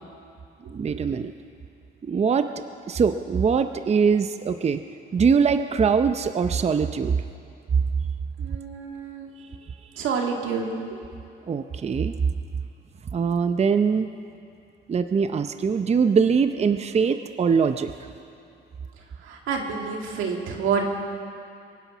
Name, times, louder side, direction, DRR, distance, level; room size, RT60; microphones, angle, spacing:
voice 1, 0.7-1.3 2.1-2.5 2.9-4.8 5.1-7.2 11.5-12.1 13.1-14.1 14.9-17.9, right 6 dB, 35° right, 9 dB, 0.6 m, -22 dB
voice 2, 8.4-9.3 10.0-10.7 19.2-20.9, right 6 dB, 90° right, 2 dB, 2.1 m, -28 dB
23.5 x 10.0 x 6.1 m, 2.6 s
cardioid pair, 90°, 20 cm